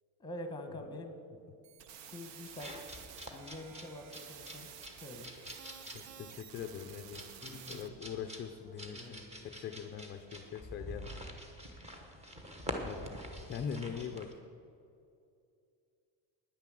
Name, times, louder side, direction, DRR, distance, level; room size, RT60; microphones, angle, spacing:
voice 1, 0.2-1.2 2.1-2.8 3.3-4.7 5.0-5.3 7.4-7.8 8.9-9.6 11.0-11.2 12.8-13.2 13.7-14.2, left 1 dB, 10° left, 6 dB, 1.1 m, -46 dB
sound 1, 1.6-7.9, right 9 dB, 75° right, 0.9 m, -52 dB
sound 2, 2.4-14.3, equal, 15° right, 1.1 m, -46 dB
voice 2, 5.9-7.2 7.7-11.1 12.8-13.1 13.5-14.3, left 7 dB, 25° left, 7 dB, 0.4 m, -42 dB
10.0 x 9.6 x 7.5 m, 2.5 s
cardioid pair, 170°, 43 cm